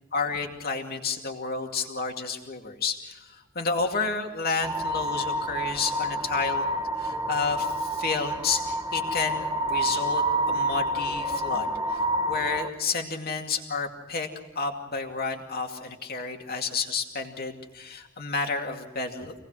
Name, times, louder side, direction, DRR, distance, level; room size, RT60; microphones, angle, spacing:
voice 1, 0.1-6.7 7.0-14.3 14.6-19.3, left 4 dB, 45° left, 3 dB, 2.3 m, -31 dB
sound 1, 4.6-12.7, right 1 dB, 20° right, 0.9 m, -28 dB
26.0 x 19.0 x 6.3 m, 1.1 s
head